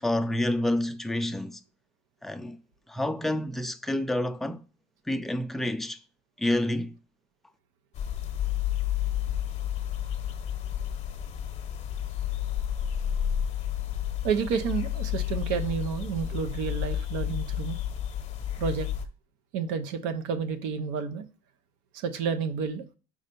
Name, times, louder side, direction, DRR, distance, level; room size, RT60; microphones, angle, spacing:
voice 1, 0.0-1.6 2.2-2.6 2.9-4.6 5.1-6.0 6.4-6.9, left 1 dB, ahead, 0.3 m, -28 dB
sound 1, 7.9-19.0, left 10 dB, 35° left, 0.8 m, -31 dB
voice 2, 14.2-17.8 18.6-18.9 19.5-21.3 21.9-22.8, right 6 dB, 85° right, 0.8 m, -30 dB
4.9 x 4.3 x 5.2 m
cardioid pair, 145°, 19 cm